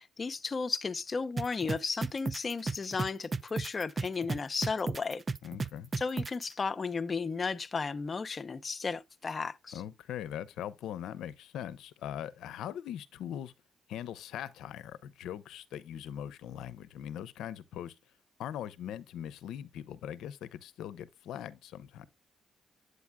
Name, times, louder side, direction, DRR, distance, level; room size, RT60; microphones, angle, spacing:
voice 1, 0.0-5.2 6.0-9.7, left 4 dB, 35° left, 0.6 m, -34 dB
sound 1, 1.4-6.4, right 4 dB, 30° right, 0.4 m, -33 dB
voice 2, 5.4-5.9 9.7-13.5 13.9-18.0 18.4-22.1, left 10 dB, 80° left, 0.6 m, -41 dB
8.3 x 8.0 x 2.2 m
cardioid pair, 90°, 0 cm